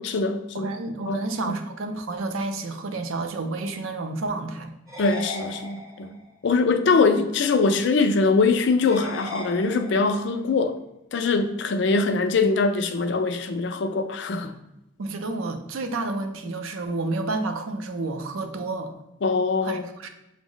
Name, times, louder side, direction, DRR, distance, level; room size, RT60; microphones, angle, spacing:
voice 1, 0.0-0.7 1.1-1.6 5.0-6.2 6.4-10.8 11.1-14.5 19.2-19.8, left 4 dB, 55° left, 8 dB, 0.3 m, -23 dB
voice 2, 0.5-4.7 15.0-18.9 19.6-20.1, right 2 dB, 80° right, 6 dB, 0.5 m, -30 dB
sound 1, 4.9-6.3 8.9-10.3, left 2 dB, 15° right, 0.6 m, -37 dB
6.0 x 2.0 x 3.8 m, 0.91 s
head